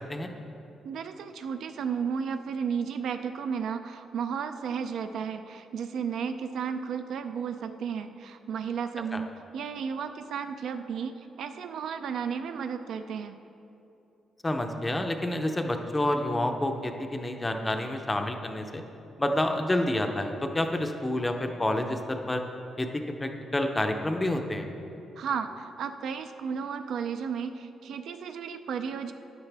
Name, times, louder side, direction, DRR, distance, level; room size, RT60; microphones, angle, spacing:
voice 1, 0.8-13.4 25.2-29.1, right 6 dB, 60° right, 8 dB, 0.5 m, -33 dB
voice 2, 14.4-18.8 19.2-22.4 22.8-24.7, left 1 dB, 10° left, 5 dB, 0.6 m, -29 dB
13.0 x 9.8 x 3.4 m, 2.8 s
cardioid pair, 175°, 0 cm